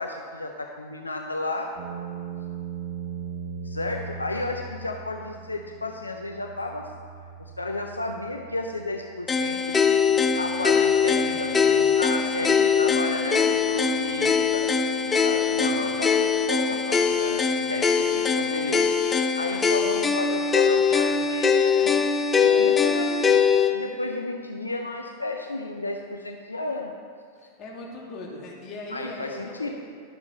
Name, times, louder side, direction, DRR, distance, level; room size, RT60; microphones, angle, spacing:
voice 1, 0.0-1.7 3.6-6.9 7.4-9.8 10.4-14.7 15.0-18.8 19.3-22.0 22.4-23.2 23.7-26.9 28.9-29.7, left 2 dB, 80° left, 3 dB, 0.5 m, -32 dB
sound 1, 1.8-15.8, right 7 dB, 55° right, 1.0 m, -41 dB
sound 2, 9.3-23.7, left 6 dB, 15° left, 0.6 m, -22 dB
voice 2, 11.0-11.9 27.4-29.7, left 2 dB, 35° left, -3 dB, 2.2 m, -40 dB
11.5 x 7.0 x 4.1 m, 2.2 s
figure-of-eight pair, 90°, 0 cm